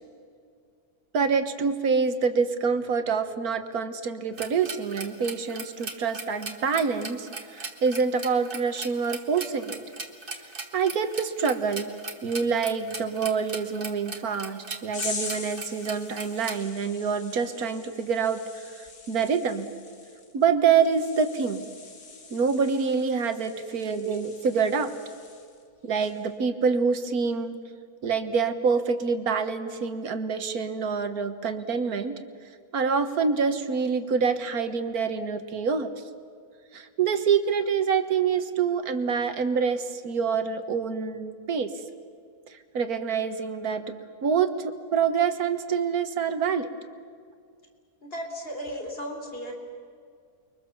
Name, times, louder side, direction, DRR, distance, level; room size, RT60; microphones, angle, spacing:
voice 1, 1.1-9.8 10.7-11.9 12.2-19.7 20.3-21.7 22.3-25.0 25.8-27.6 28.0-32.2 32.7-35.9 36.7-41.7 42.5-46.7, right 6 dB, 75° right, 9 dB, 1.8 m, -26 dB
sound 1, 4.4-16.6, right 3 dB, 35° right, 1.9 m, -38 dB
sound 2, 14.9-25.6 26.0-26.3, left 4 dB, 70° left, 2.4 m, -42 dB
voice 2, 48.0-49.5, equal, 35° left, 3 dB, 3.6 m, -35 dB
29.5 x 23.0 x 7.2 m, 2.2 s
omnidirectional pair, 1.6 m